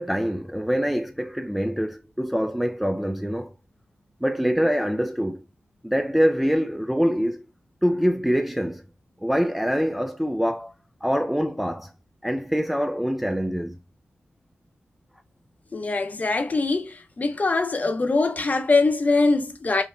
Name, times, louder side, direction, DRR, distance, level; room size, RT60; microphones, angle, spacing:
voice 1, 0.0-3.5 4.2-5.4 5.8-7.4 7.8-8.8 9.2-10.7 11.0-11.9 12.2-13.8, equal, 5° right, 0.3 m, -24 dB
voice 2, 15.7-19.8, left 3 dB, 35° left, 0.6 m, -22 dB
5.1 x 2.1 x 2.4 m
wide cardioid pair, 85°, 4 cm